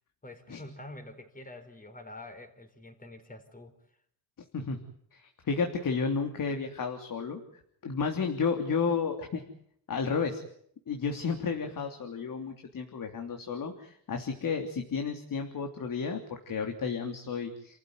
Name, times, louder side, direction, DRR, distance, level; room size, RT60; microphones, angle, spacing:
voice 1, 0.2-3.7, left 1 dB, 20° left, 8 dB, 4.7 m, -46 dB
voice 2, 5.1-7.4 7.8-9.4 9.9-10.4 10.9-17.8, left 5 dB, 50° left, 4 dB, 3.3 m, -32 dB
28.5 x 15.0 x 9.7 m, 0.68 s
cardioid pair, 100°, 43 cm